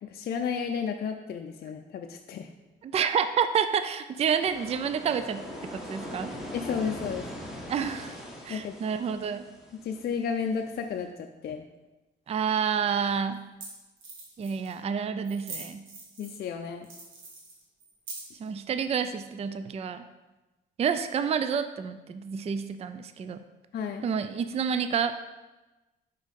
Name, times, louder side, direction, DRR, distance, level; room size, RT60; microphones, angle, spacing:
voice 1, 0.0-2.5 6.5-7.3 8.5-8.8 9.7-11.1 11.4-11.6 16.2-16.9 23.7-24.1, left 6 dB, 55° left, 4 dB, 0.5 m, -32 dB
voice 2, 2.8-6.3 7.7-8.1 8.5-9.4 12.3-13.4 14.4-15.8 18.4-20.0 20.8-23.4 24.0-25.1, right 7 dB, 30° right, 11 dB, 0.4 m, -29 dB
sound 1, 4.4-11.1, equal, ahead, 1.4 m, -41 dB
sound 2, 12.5-12.6 13.3-13.4 13.6-13.7 14.0-14.8 15.2-16.5 16.8-18.5, right 3 dB, 85° right, 1.6 m, -43 dB
5.4 x 4.1 x 5.2 m, 1.1 s
cardioid pair, 90°, 20 cm